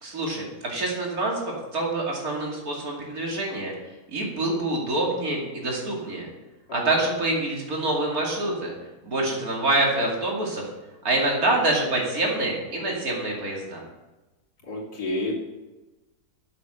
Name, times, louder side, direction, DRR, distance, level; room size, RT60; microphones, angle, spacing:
voice 1, 0.0-3.7 4.1-6.3 6.7-8.7 9.0-10.6 11.0-13.8, right 2 dB, 60° right, -2 dB, 2.9 m, -26 dB
voice 2, 14.7-15.3, left 2 dB, 75° left, -5 dB, 3.6 m, -30 dB
9.8 x 8.0 x 6.5 m, 1.1 s
omnidirectional pair, 1.7 m